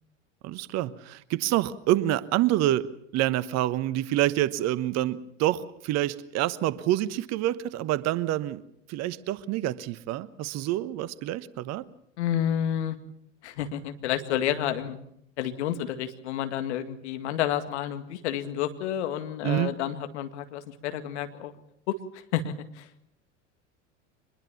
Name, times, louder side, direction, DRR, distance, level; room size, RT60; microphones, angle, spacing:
voice 1, 0.4-2.9 3.1-8.6 8.9-11.8 19.4-19.7, right 14 dB, 45° right, 16 dB, 1.2 m, -27 dB
voice 2, 12.2-13.0 13.4-15.0 15.4-21.6 21.9-22.0 22.3-23.0, left 10 dB, 65° left, 8 dB, 2.1 m, -30 dB
24.5 x 21.0 x 7.1 m, 0.73 s
hypercardioid pair, 80°, 37 cm